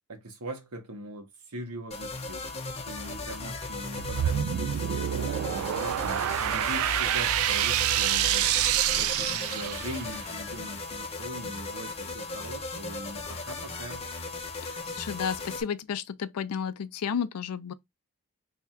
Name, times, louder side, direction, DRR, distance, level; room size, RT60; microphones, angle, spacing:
voice 1, 0.1-2.5 2.9-8.6 8.9-14.1, right 1 dB, 90° right, 1.0 m, -41 dB
sound 1, 1.9-15.6, left 3 dB, 25° left, 0.7 m, -37 dB
sound 2, 3.9-10.2, right 11 dB, 70° right, 0.3 m, -27 dB
voice 2, 14.5-17.7, left 7 dB, 85° left, 0.4 m, -32 dB
3.5 x 2.4 x 4.2 m
head